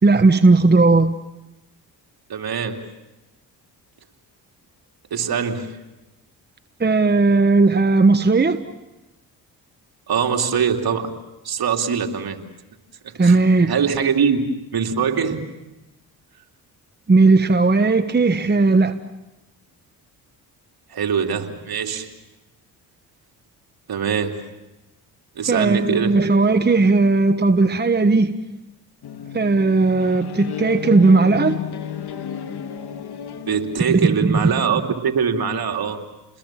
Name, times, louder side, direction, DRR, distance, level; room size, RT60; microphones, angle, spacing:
voice 1, 0.0-1.1 6.8-8.6 13.2-13.7 17.1-18.9 25.5-28.3 29.3-31.6 33.9-34.5, right 3 dB, 25° right, 9 dB, 1.2 m, -16 dB
voice 2, 2.3-2.9 5.1-5.8 10.1-11.2 11.4-12.4 13.0-13.4 13.7-14.4 14.7-15.4 20.9-22.1 23.9-24.5 25.4-26.2 33.4-36.0, right 6 dB, 55° right, 3 dB, 2.9 m, -23 dB
sound 1, 29.0-34.2, left 9 dB, 60° left, 2.0 m, -32 dB
30.0 x 21.0 x 7.5 m, 1.0 s
supercardioid pair, 55°, 44 cm